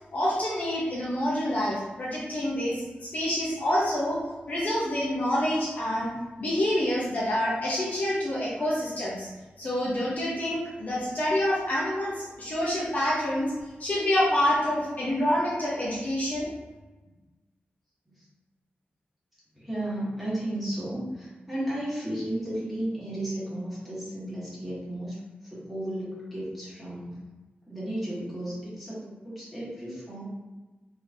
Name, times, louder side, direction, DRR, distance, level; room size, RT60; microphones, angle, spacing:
voice 1, 0.1-4.2 4.5-6.1 6.4-9.3 9.6-13.5 13.8-16.5, left 1 dB, 45° left, -6 dB, 0.8 m, -27 dB
voice 2, 19.5-25.1 25.4-27.2 27.7-30.3, right 1 dB, 5° right, -9 dB, 1.5 m, -34 dB
3.8 x 3.3 x 2.7 m, 1.2 s
wide cardioid pair, 175°, 4 cm